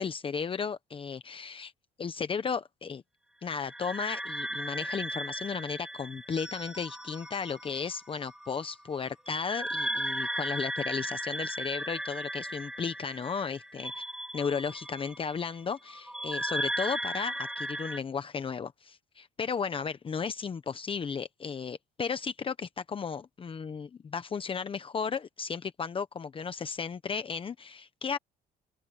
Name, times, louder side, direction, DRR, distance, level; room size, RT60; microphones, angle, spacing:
voice 1, 0.0-1.7 2.0-3.0 3.4-14.0 14.3-28.2, left 6 dB, 30° left, 1.0 m, -34 dB
sound 1, 3.6-18.0, right 1 dB, 5° right, 5.5 m, -37 dB
cardioid pair, 110°, 17 cm